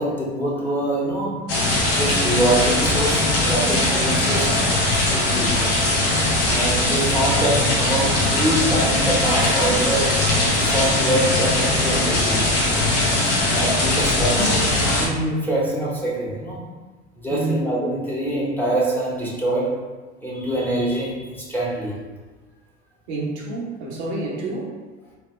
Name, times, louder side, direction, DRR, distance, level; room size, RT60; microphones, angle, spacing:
voice 1, 0.0-1.5 1.9-4.8 5.1-5.8 6.5-10.3 10.6-12.4 13.5-16.8 17.2-19.8 20.2-22.0, right 1 dB, 5° left, -6 dB, 1.0 m, -24 dB
sound 1, 1.5-15.1, left 2 dB, 45° left, 1.0 m, -20 dB
voice 2, 13.8-14.2 17.3-17.6 23.1-24.8, right 3 dB, 70° right, -3 dB, 1.0 m, -29 dB
3.3 x 2.1 x 3.2 m, 1.3 s
hypercardioid pair, 70°, 35 cm